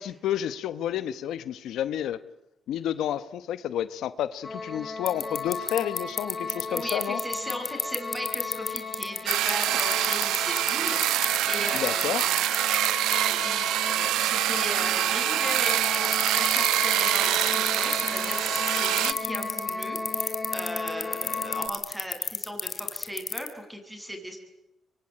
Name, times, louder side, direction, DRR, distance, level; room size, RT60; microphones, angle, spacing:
voice 1, 0.0-2.2 2.7-7.2 11.7-12.2, left 11 dB, 80° left, 14 dB, 1.1 m, -30 dB
sound 1, 4.4-21.7, left 3 dB, 25° left, 4.7 m, -35 dB
sound 2, 5.1-12.9 13.1-13.2 15.7-23.5, left 5 dB, 40° left, 3.5 m, -28 dB
voice 2, 6.7-12.4 13.2-24.4, equal, 5° right, 5 dB, 8.0 m, -37 dB
sound 3, 9.3-19.1, right 14 dB, 90° right, 1.0 m, -25 dB
25.0 x 24.0 x 10.0 m, 0.87 s
cardioid pair, 90°, 0 cm